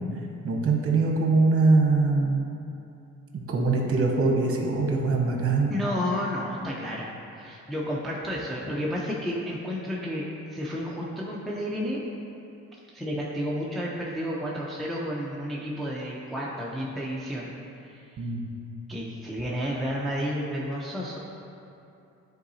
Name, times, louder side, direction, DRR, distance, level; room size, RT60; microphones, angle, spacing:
voice 1, 0.4-2.4 3.3-5.7 6.6-6.7 18.2-18.4, right 3 dB, 50° right, 0 dB, 1.0 m, -23 dB
voice 2, 5.7-10.3 10.5-12.0 12.9-17.5 18.9-21.2, equal, ahead, -5 dB, 0.7 m, -31 dB
9.5 x 3.9 x 2.8 m, 2.7 s
cardioid pair, 90°, 30 cm